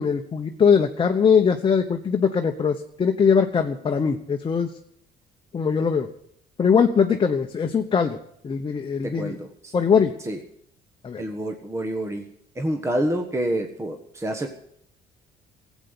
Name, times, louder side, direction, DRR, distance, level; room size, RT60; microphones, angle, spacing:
voice 1, 0.0-4.7 5.5-6.1 6.6-8.2 8.4-9.3 9.7-10.1 11.0-11.2, left 6 dB, 30° left, 4 dB, 0.9 m, -21 dB
voice 2, 9.0-9.7 10.2-10.4 11.2-14.5, right 1 dB, 15° right, 4 dB, 1.4 m, -28 dB
15.0 x 8.3 x 9.6 m, 0.70 s
cardioid pair, 110°, 17 cm